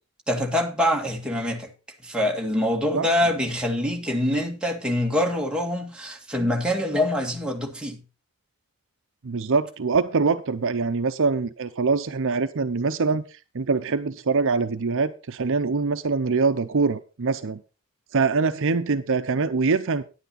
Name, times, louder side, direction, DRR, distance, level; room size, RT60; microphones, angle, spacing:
voice 1, 0.3-1.7 2.0-8.0, left 1 dB, 5° right, 1.8 m, -25 dB
voice 2, 9.2-17.6 18.1-20.0, right 4 dB, 60° right, 0.7 m, -24 dB
10.0 x 9.6 x 4.1 m
head